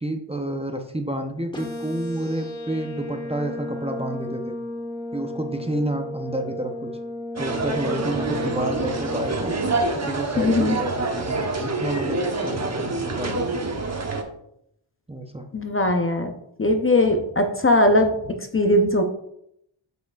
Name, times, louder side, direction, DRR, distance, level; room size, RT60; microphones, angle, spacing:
voice 1, 0.0-4.6 5.1-6.9 7.4-9.5 10.1-13.6 15.1-15.5, right 1 dB, 10° right, 4 dB, 0.6 m, -30 dB
sound 1, 1.5-9.5, left 1 dB, 10° left, 1.4 m, -34 dB
sound 2, 7.4-14.2, right 2 dB, 30° right, 0.9 m, -26 dB
voice 2, 10.4-10.8 15.5-16.3 16.6-19.0, left 1 dB, 25° left, 5 dB, 0.6 m, -20 dB
7.4 x 6.5 x 2.4 m, 0.76 s
wide cardioid pair, 90°, 50 cm